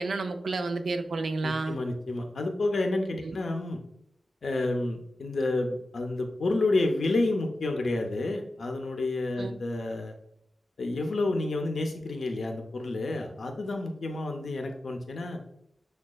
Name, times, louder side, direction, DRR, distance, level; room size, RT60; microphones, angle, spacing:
voice 1, 0.0-1.8 3.2-3.4 9.4-9.5, right 3 dB, 90° right, 7 dB, 0.3 m, -30 dB
voice 2, 1.4-3.8 4.4-10.1 10.8-15.4, left 2 dB, 80° left, 3 dB, 0.5 m, -29 dB
6.1 x 2.2 x 2.2 m, 0.75 s
wide cardioid pair, 90°, 0 cm